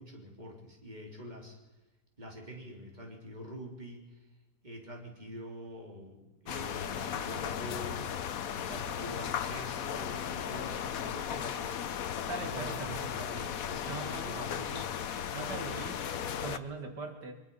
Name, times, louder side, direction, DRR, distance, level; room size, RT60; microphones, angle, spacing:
voice 1, 0.0-1.6 2.2-4.2 4.6-8.1 8.5-11.7 12.4-15.0, equal, 25° right, 0 dB, 3.7 m, -45 dB
sound 1, 6.5-16.6, left 9 dB, 60° left, 1.2 m, -36 dB
voice 2, 12.3-13.5 13.9-14.5 15.3-16.0 16.4-17.3, right 4 dB, 80° right, 5 dB, 2.3 m, -41 dB
23.5 x 22.0 x 5.5 m, 1.1 s
omnidirectional pair, 1.8 m